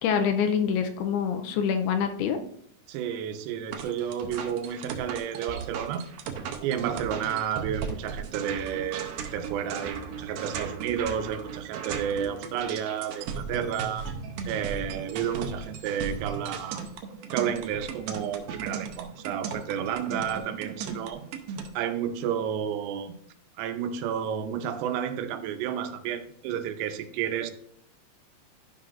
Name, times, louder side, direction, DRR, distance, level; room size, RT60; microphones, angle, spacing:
voice 1, 0.0-2.4, left 7 dB, 80° left, 6 dB, 2.5 m, -25 dB
voice 2, 2.9-6.1 6.6-14.1 14.5-16.8 17.3-21.2 21.8-23.1 23.6-27.5, right 8 dB, 90° right, 8 dB, 2.9 m, -31 dB
sound 1, 3.7-21.7, right 6 dB, 75° right, 2.3 m, -36 dB
12.0 x 5.6 x 2.5 m, 0.68 s
omnidirectional pair, 4.8 m